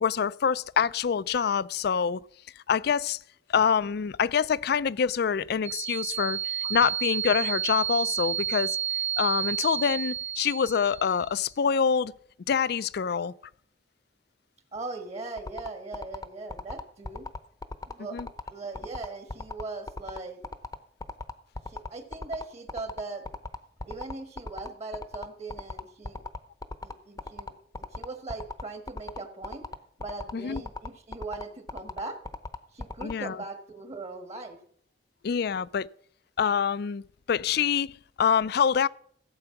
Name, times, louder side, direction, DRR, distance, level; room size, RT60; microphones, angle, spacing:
voice 1, 0.0-2.2 2.7-3.2 3.5-8.8 9.2-12.1 12.5-13.3 18.1-18.3 30.3-30.6 33.0-33.4 35.2-35.9 36.4-37.0 37.3-38.9, left 7 dB, 60° left, 0.4 m, -26 dB
sound 1, 5.6-11.3, right 9 dB, 70° right, 1.7 m, -31 dB
voice 2, 14.7-17.3 17.9-18.2 18.5-20.4 21.7-23.2 23.8-26.2 26.8-29.6 30.0-32.2 32.7-34.6, right 3 dB, 40° right, 1.6 m, -39 dB
sound 2, 15.4-33.1, left 2 dB, 20° left, 0.7 m, -37 dB
15.0 x 7.9 x 5.8 m
head